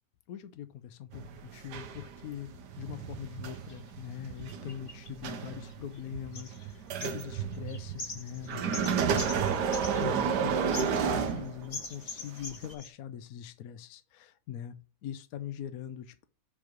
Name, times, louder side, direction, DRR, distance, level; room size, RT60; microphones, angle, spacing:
voice 1, 0.3-2.5 2.8-9.4 9.7-14.8 15.0-16.3, left 10 dB, 70° left, 10 dB, 0.9 m, -42 dB
sound 1, 1.1-12.0 12.6-12.7, right 7 dB, 75° right, 1.4 m, -32 dB
sound 2, 3.5-3.8 4.5-6.0 6.3-6.7 7.0-10.4 10.7-11.4 11.7-12.9, left 3 dB, 35° left, 1.1 m, -43 dB
7.0 x 3.3 x 5.0 m, 0.35 s
omnidirectional pair, 1.8 m